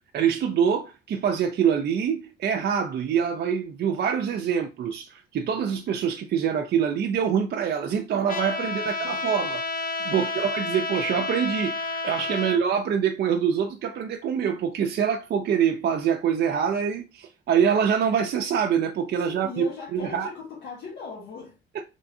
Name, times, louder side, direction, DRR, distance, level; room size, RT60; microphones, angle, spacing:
voice 1, 0.1-9.6 10.0-20.3 21.7-21.8, right 7 dB, 55° right, 0.5 m, -25 dB
Trumpet, 8.3-12.6, left 3 dB, 45° left, 0.7 m, -30 dB
voice 2, 8.6-9.2 10.0-10.4 12.3-12.6 19.3-21.6, left 5 dB, 65° left, 1.3 m, -40 dB
3.6 x 3.4 x 2.6 m
cardioid pair, 90°, 20 cm